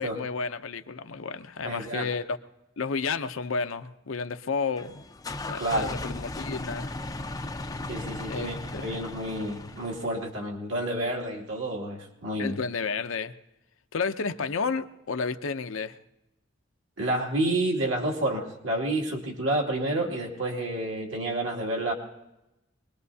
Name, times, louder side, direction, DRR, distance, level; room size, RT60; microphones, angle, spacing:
voice 1, 0.0-2.4 2.8-5.0 5.5-6.9 8.3-9.0 12.4-13.3 13.9-16.0, left 5 dB, 75° left, 9 dB, 0.7 m, -31 dB
voice 2, 1.6-2.1 5.6-5.9 7.9-12.6 17.0-21.9, right 1 dB, 65° right, 0 dB, 2.5 m, -29 dB
sound 1, 4.8-10.3, left 2 dB, 15° left, 0.5 m, -37 dB
23.5 x 20.5 x 2.8 m, 0.92 s
head